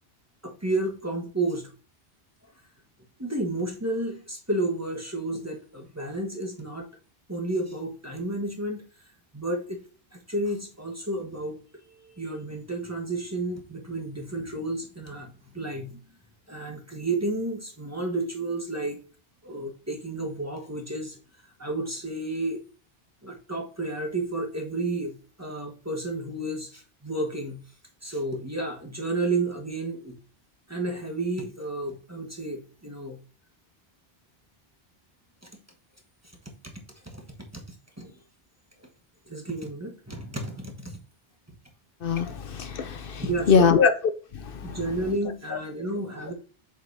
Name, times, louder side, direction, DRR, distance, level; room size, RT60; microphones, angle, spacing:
voice 1, 0.4-1.7 3.2-6.9 7.3-8.8 9.3-9.8 10.1-11.6 12.0-16.0 16.5-19.0 19.4-21.2 21.6-22.6 23.2-27.6 28.0-30.2 30.7-33.2 36.6-36.7 37.1-38.1 39.3-41.0 43.2-43.8 44.5-46.3, right 2 dB, 15° right, 1.2 m, -31 dB
voice 2, 42.0-43.9 44.7-44.8, left 6 dB, 65° left, 0.8 m, -22 dB
7.1 x 5.2 x 2.6 m
omnidirectional pair, 1.0 m